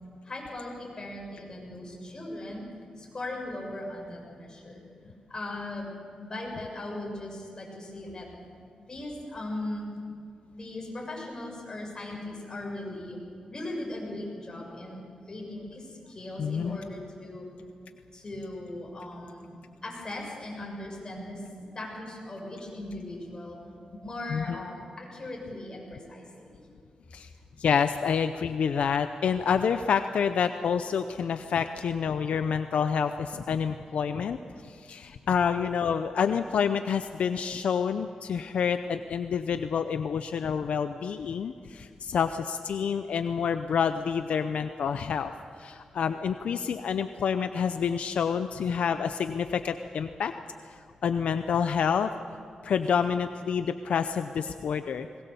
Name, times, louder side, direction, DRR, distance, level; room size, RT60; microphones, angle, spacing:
voice 1, 0.2-2.7 3.0-4.8 5.3-5.9 6.2-8.3 8.9-9.9 10.6-13.2 13.5-15.0 15.3-17.5 18.1-19.5 19.8-23.6 24.0-26.6, left 1 dB, 35° left, -1 dB, 7.0 m, -38 dB
voice 2, 16.4-16.8 24.3-24.6 27.1-27.3 27.6-34.4 34.6-45.3 45.6-50.3 51.0-52.1 52.6-55.1, left 7 dB, 80° left, 9 dB, 0.6 m, -28 dB
21.0 x 20.5 x 7.0 m, 2.4 s
cardioid pair, 80°, 2 cm